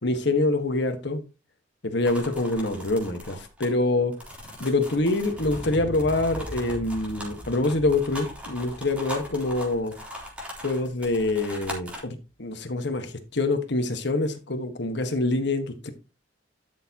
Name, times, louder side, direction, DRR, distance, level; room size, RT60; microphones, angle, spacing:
voice 1, 0.0-1.2 1.8-4.1 4.6-9.9 10.6-15.9, left 2 dB, 65° left, 1.6 m, -25 dB
sound 1, 2.1-12.0, left 1 dB, 5° right, 3.6 m, -40 dB
Explosion, 5.3-11.4 11.7-11.8, right 1 dB, 10° left, 3.5 m, -41 dB
12.5 x 6.8 x 3.0 m
head